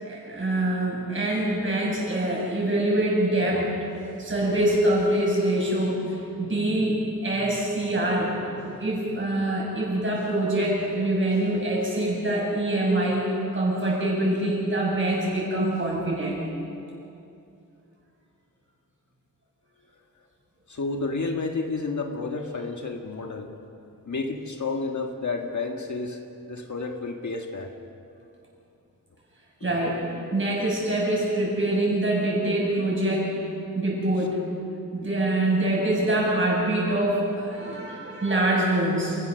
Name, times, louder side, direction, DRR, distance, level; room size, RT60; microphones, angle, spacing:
voice 1, 0.0-3.7 4.2-8.3 8.8-16.4 29.6-30.0 30.3-33.3 33.7-34.4 34.9-39.2, right 1 dB, 35° right, -4 dB, 7.8 m, -25 dB
voice 2, 20.7-23.5 24.1-27.7 29.6-29.8, left 3 dB, 55° left, 3 dB, 1.7 m, -31 dB
28.5 x 16.0 x 6.9 m, 2.6 s
wide cardioid pair, 145°, 35 cm